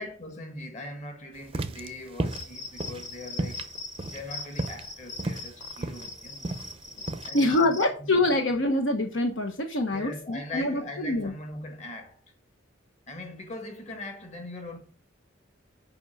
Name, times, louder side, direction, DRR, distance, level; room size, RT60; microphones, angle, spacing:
voice 1, 0.0-3.8 4.1-6.5 7.2-8.3 9.9-12.2 13.1-14.8, left 2 dB, 35° left, 1.9 m, -41 dB
sound 1, 1.4-7.3, right 2 dB, 25° right, 0.6 m, -34 dB
Cricket, 2.3-7.9, left 3 dB, 15° left, 1.0 m, -41 dB
voice 2, 7.3-11.3, left 2 dB, 65° left, 1.1 m, -25 dB
6.9 x 5.2 x 7.1 m
head